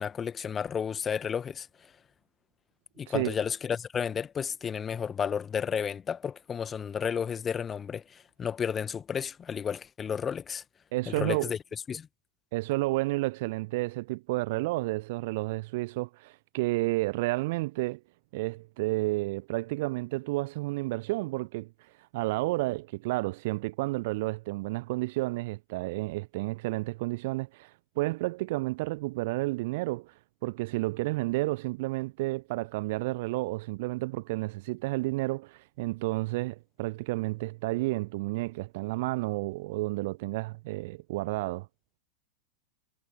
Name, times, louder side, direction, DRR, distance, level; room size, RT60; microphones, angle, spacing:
voice 1, 0.0-1.7 3.0-10.6 11.1-11.6 11.9-12.1, left 7 dB, 20° left, 1.6 m, -32 dB
voice 2, 10.9-11.5 12.5-18.0 18.3-21.7 22.1-30.1 30.4-41.7, right 21 dB, 50° right, 0.4 m, -31 dB
figure-of-eight pair, 90°, 0 cm